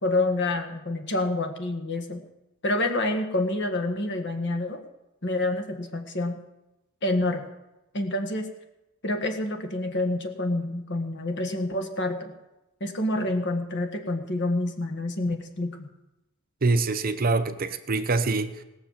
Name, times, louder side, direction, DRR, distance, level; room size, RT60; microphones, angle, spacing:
voice 1, 0.0-2.2 2.6-4.8 5.2-6.4 7.0-7.5 7.9-8.5 9.0-12.3 12.8-15.9, left 2 dB, 55° left, 1.6 m, -27 dB
voice 2, 16.6-18.6, right 3 dB, 40° right, 0.7 m, -25 dB
18.5 x 6.7 x 7.4 m
head